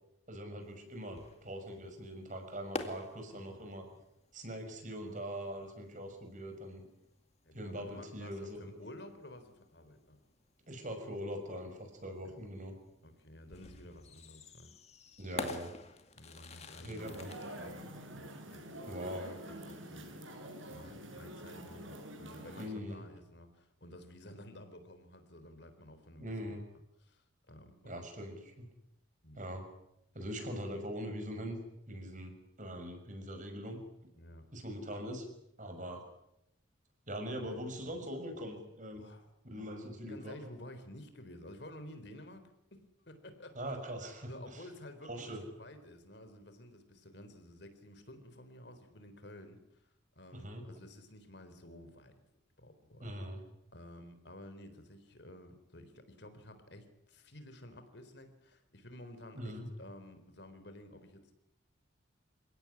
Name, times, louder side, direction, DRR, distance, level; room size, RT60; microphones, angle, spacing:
voice 1, 0.3-3.9 4.3-6.8 7.5-8.6 10.7-12.8 15.2-15.7 16.8-17.3 18.9-19.4 22.6-23.0 26.2-26.6 27.8-28.7 29.4-29.6 30.1-31.6 31.9-33.8 34.5-35.3 35.6-36.0 37.1-39.0 39.4-40.4 43.6-44.7 45.0-45.4 50.3-50.6 53.0-53.4 59.4-59.7, equal, 40° right, 6 dB, 6.2 m, -42 dB
sound 1, 0.7-18.7, left 3 dB, 35° left, 2.3 m, -49 dB
voice 2, 7.4-10.2 12.3-12.4 13.0-14.7 16.1-17.2 17.5-20.2 20.7-26.6 27.0-27.9 29.2-29.4 34.1-34.5 37.4-37.6 39.0-39.7 40.1-43.6 44.3-49.9 50.2-52.1 52.6-53.2 53.7-61.3, left 1 dB, 60° left, 9 dB, 3.9 m, -52 dB
sound 2, 17.0-22.7, right 1 dB, 90° right, 6.4 m, -47 dB
29.0 x 17.0 x 9.9 m, 0.83 s
head